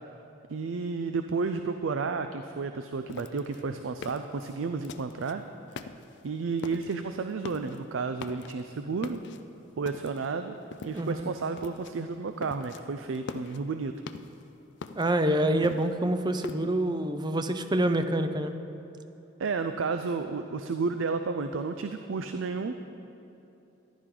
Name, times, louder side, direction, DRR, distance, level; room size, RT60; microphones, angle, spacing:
voice 1, 0.5-5.4 5.8-5.9 6.2-9.2 9.8-10.5 10.8-13.9 19.4-22.7, right 4 dB, 75° right, 8 dB, 0.4 m, -32 dB
sound 1, 3.1-5.4 5.7-6.3 6.6-7.0 7.3-7.8 8.1-8.7 9.0-10.3 10.7-11.2 11.6-12.0 12.2-12.8 13.1-14.4 14.8-16.6, left 4 dB, 60° left, 0.5 m, -43 dB
voice 2, 10.9-11.3 15.0-18.5, right 1 dB, 20° right, 9 dB, 0.5 m, -26 dB
14.5 x 11.0 x 3.8 m, 2.9 s
head